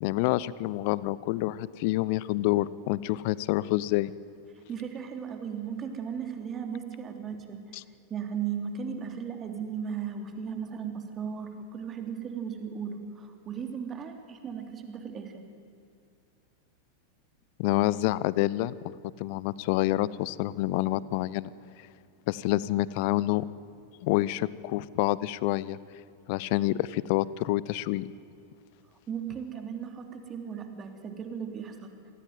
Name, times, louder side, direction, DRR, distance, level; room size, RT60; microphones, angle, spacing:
voice 1, 0.0-4.1 7.7-7.8 17.6-18.7 19.2-21.5 22.3-23.4 24.0-25.8 26.3-28.1, left 17 dB, 45° left, 20 dB, 0.7 m, -27 dB
voice 2, 4.7-7.6 8.1-15.4 29.1-32.1, right 7 dB, 25° right, 6 dB, 3.2 m, -36 dB
26.5 x 20.0 x 9.4 m, 2.3 s
figure-of-eight pair, 90°, 0 cm